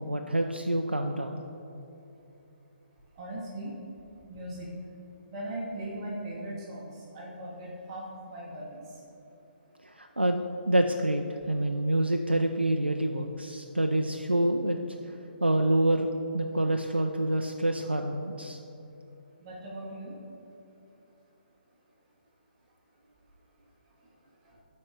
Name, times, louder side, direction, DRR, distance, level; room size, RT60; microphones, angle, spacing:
voice 1, 0.0-1.4 9.8-14.8 15.0-16.1 16.3-18.6, right 1 dB, 90° right, 4 dB, 0.4 m, -27 dB
voice 2, 3.2-3.7 4.3-4.7 5.3-6.9 7.1-8.8 19.4-20.1, right 1 dB, 30° right, -5 dB, 1.3 m, -38 dB
11.5 x 4.3 x 3.5 m, 3.0 s
figure-of-eight pair, 135°, 6 cm